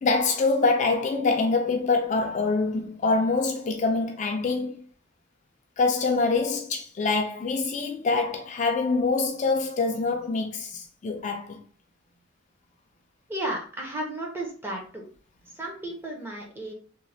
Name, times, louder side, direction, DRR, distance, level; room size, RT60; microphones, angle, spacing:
voice 1, 0.0-4.8 5.8-11.6, left 3 dB, 35° left, 0.3 m, -25 dB
voice 2, 13.3-15.1 15.4-16.7, right 1 dB, 10° right, 0.5 m, -33 dB
3.0 x 2.1 x 2.6 m
head